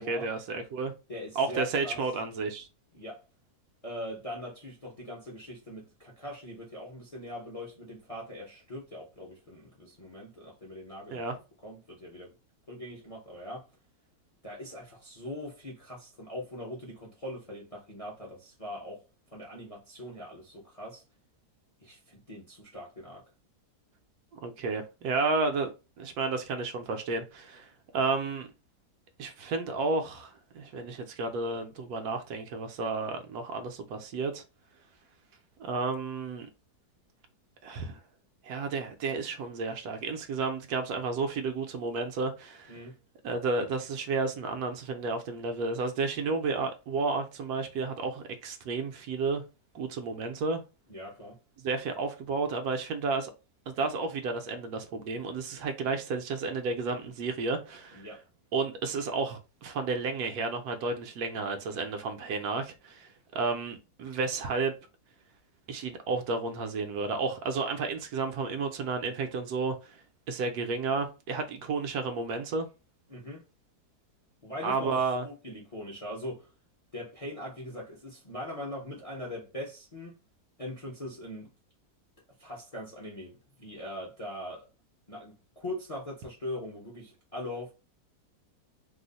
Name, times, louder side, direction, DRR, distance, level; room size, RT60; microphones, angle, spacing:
voice 1, 0.0-0.9 1.4-2.7 11.1-11.4 24.4-25.7 26.0-28.5 29.2-34.4 35.6-36.5 37.6-38.0 38.4-42.7 43.2-49.4 49.7-50.6 51.6-53.3 53.7-58.1 58.5-64.8 65.7-70.0 70.3-72.7 74.6-75.3, right 4 dB, 70° right, 1.0 m, -32 dB
voice 2, 1.1-2.0 2.9-3.2 3.8-11.2 11.6-12.3 12.7-13.6 14.4-19.0 19.3-21.0 21.8-23.2 42.7-43.0 50.9-51.4 57.9-58.2 73.1-73.4 74.4-76.5 76.9-80.2 80.6-81.5 82.4-84.7 85.1-87.7, left 1 dB, 40° left, 0.5 m, -41 dB
3.0 x 2.0 x 3.9 m
omnidirectional pair, 1.8 m